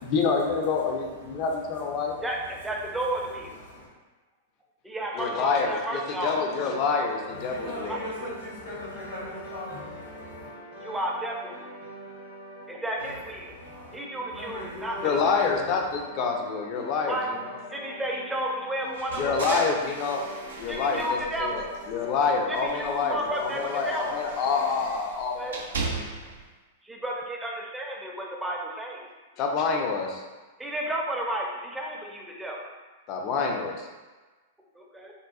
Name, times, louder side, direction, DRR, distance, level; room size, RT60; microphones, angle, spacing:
voice 1, 0.0-2.2 5.1-8.0 15.0-17.6 19.2-20.2 20.6-25.8 29.4-30.2 33.1-33.9, left 5 dB, 45° left, 0.5 m, -27 dB
voice 2, 1.2-1.5 1.9-3.9 7.3-10.5 13.0-14.0 14.3-15.7, left 1 dB, 85° left, 1.5 m, -41 dB
voice 3, 2.2-3.6 4.8-6.3 7.9-8.0 10.8-11.6 12.7-13.5 13.9-15.0 17.1-17.3 17.7-19.6 20.7-21.5 22.5-23.6 23.8-24.0 25.3-25.5 26.8-29.1 30.6-32.6 34.8-35.1, right 1 dB, 10° right, 0.5 m, -32 dB
sound 1, 6.3-25.0, left 1 dB, 60° left, 0.9 m, -44 dB
sound 2, 18.9-22.1 22.5-26.4, right 3 dB, 80° right, 0.5 m, -38 dB
3.7 x 2.2 x 2.4 m
hypercardioid pair, 105°, 0 cm